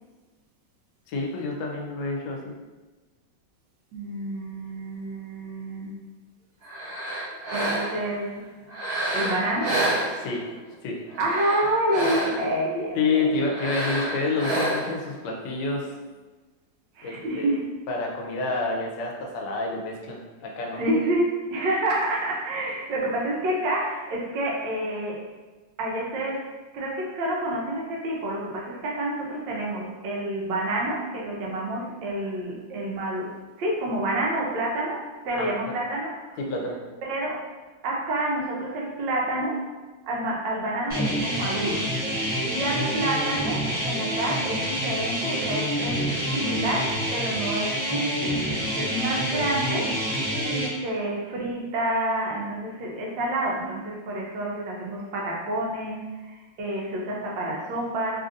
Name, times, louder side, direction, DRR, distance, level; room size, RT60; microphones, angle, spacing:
voice 1, 1.1-2.5 10.1-10.4 10.8-11.0 13.0-15.9 17.0-17.6 17.9-20.8 35.3-35.6 36.4-36.8, left 3 dB, 75° left, 0 dB, 1.2 m, -28 dB
voice 2, 3.9-6.0 7.5-8.5 9.1-9.8 11.2-13.3 17.0-17.6 20.8-25.2 25.8-26.5 26.7-36.4 37.0-37.4 37.8-39.6 40.0-41.9 42.5-48.4 48.7-50.0 50.4-56.0 56.3-58.2, right 1 dB, 80° right, -2 dB, 1.4 m, -28 dB
sound 1, 6.6-8.1 8.7-10.6 11.1-12.6 13.5-15.0, right 1 dB, 60° right, 1.8 m, -29 dB
sound 2, 40.9-50.7, equal, 15° right, 0.4 m, -27 dB
3.4 x 2.6 x 2.5 m, 1.3 s
omnidirectional pair, 2.0 m